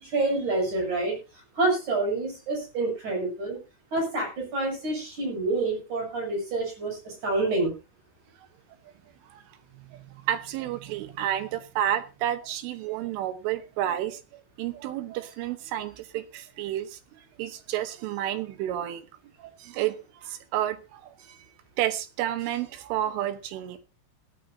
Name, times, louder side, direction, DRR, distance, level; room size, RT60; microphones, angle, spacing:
voice 1, 0.0-1.2 1.6-3.6 3.9-7.7, right 2 dB, 40° right, 0 dB, 8.7 m, -27 dB
voice 2, 9.9-19.1 19.4-20.0 20.2-21.5 21.8-23.8, right 12 dB, 80° right, 11 dB, 3.7 m, -31 dB
18.0 x 12.5 x 2.8 m, 0.28 s
omnidirectional pair, 5.7 m